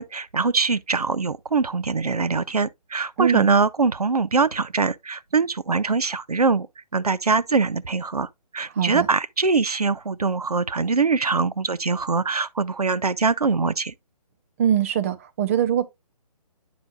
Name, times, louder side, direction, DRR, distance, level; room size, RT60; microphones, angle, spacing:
voice 1, 0.0-6.7 6.9-8.3 8.5-13.9, right 4 dB, 70° right, 0.7 m, -23 dB
voice 2, 8.7-9.1 14.6-15.9, right 9 dB, 20° right, 0.7 m, -22 dB
9.5 x 7.7 x 2.4 m
figure-of-eight pair, 140°, 20 cm